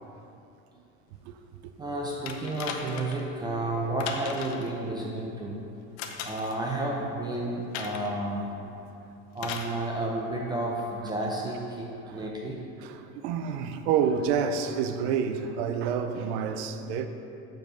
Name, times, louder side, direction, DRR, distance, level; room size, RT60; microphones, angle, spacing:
voice 1, 1.8-5.6 6.2-8.5 9.3-12.6, right 1 dB, 15° right, 0.4 m, -31 dB
sound 1, 2.3-3.2 4.0-4.7 6.0-6.6 7.7-8.1 9.4-9.7 10.8-10.9, left 6 dB, 55° left, 0.7 m, -37 dB
voice 2, 12.8-17.1, right 7 dB, 90° right, 0.6 m, -28 dB
7.5 x 4.8 x 6.1 m
cardioid pair, 170°, 32 cm